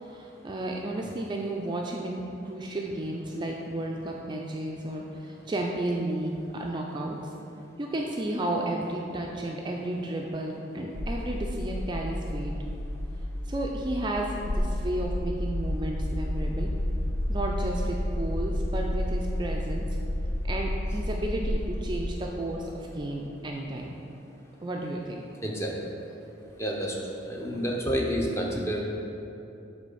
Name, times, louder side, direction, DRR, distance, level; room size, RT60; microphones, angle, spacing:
voice 1, 0.0-7.3 7.8-12.5 13.4-16.7 17.3-19.9 20.5-23.9 24.6-25.2, right 1 dB, 25° right, 0 dB, 0.3 m, -32 dB
sound 1, 11.0-22.1, left 1 dB, 60° left, 0.6 m, -30 dB
voice 2, 25.4-25.8 26.6-28.8, equal, 15° left, -1 dB, 0.7 m, -29 dB
7.3 x 3.3 x 5.4 m, 2.8 s
head